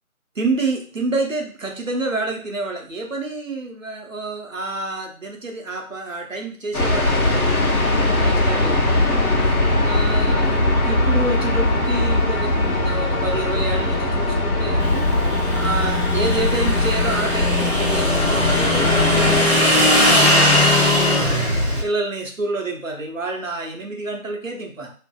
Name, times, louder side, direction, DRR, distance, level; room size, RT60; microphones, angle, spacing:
voice 1, 0.4-7.6 8.1-9.5 9.8-15.1 15.5-21.5 21.8-24.9, right 3 dB, 65° right, 3 dB, 0.7 m, -28 dB
sound 1, 6.7-19.4, left 2 dB, 90° left, 0.9 m, -20 dB
Motorcycle / Engine, 14.8-21.8, left 1 dB, 45° left, 0.7 m, -19 dB
2.6 x 2.6 x 2.2 m, 0.41 s
figure-of-eight pair, 180°, 43 cm